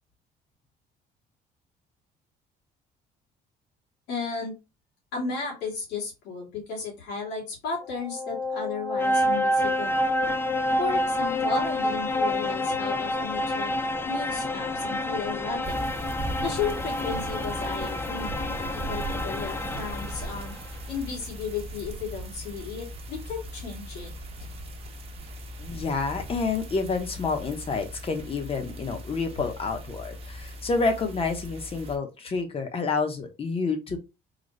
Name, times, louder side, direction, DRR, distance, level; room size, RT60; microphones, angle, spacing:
voice 1, 4.1-4.5 5.1-10.0 10.8-13.7 14.0-15.8 16.4-20.5 20.9-24.1 24.4-24.5, left 5 dB, 85° left, -3 dB, 2.3 m, -34 dB
sound 1, 7.8-20.6, left 1 dB, 15° left, 0.4 m, -28 dB
sound 2, 15.6-32.0, right 1 dB, 35° right, 1.0 m, -39 dB
voice 2, 25.6-34.0, left 4 dB, 35° left, 6 dB, 1.0 m, -29 dB
4.0 x 2.3 x 3.2 m, 0.26 s
cardioid pair, 110°, 17 cm